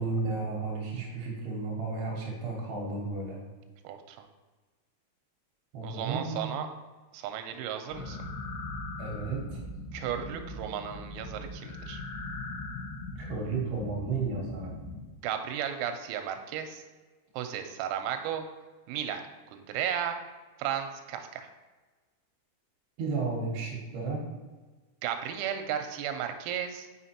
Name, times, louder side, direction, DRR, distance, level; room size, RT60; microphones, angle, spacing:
voice 1, 0.0-3.4 5.7-6.6 9.0-9.6 13.2-14.7 23.0-24.2, right 4 dB, 70° right, -3 dB, 2.7 m, -33 dB
voice 2, 3.9-4.3 5.8-6.7 7.1-8.2 9.9-12.0 15.2-16.8 17.4-18.4 18.9-19.2 19.5-20.2 20.6-21.5 25.0-26.9, right 9 dB, 90° right, 6 dB, 3.3 m, -34 dB
sound 1, 7.9-15.0, left 2 dB, 80° left, 4.1 m, -40 dB
7.5 x 5.8 x 2.8 m, 1.3 s
omnidirectional pair, 6.0 m